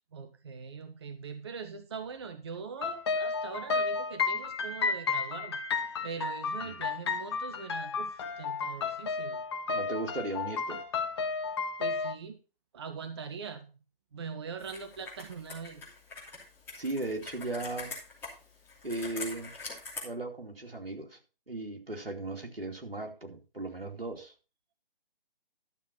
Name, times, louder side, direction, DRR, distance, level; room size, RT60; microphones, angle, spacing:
voice 1, 0.1-9.4 11.8-12.4 12.7-13.7 14.1-15.8, right 5 dB, 30° right, 0.7 m, -42 dB
sound 1, 2.8-12.2, left 4 dB, 25° left, 1.0 m, -32 dB
voice 2, 9.7-10.8 16.8-17.9 18.8-19.5 20.0-21.2 21.5-24.3, right 2 dB, 80° right, 2.6 m, -37 dB
Computer keyboard, 14.6-20.0, left 3 dB, 5° left, 3.0 m, -44 dB
12.0 x 7.2 x 4.4 m
figure-of-eight pair, 145°, 29 cm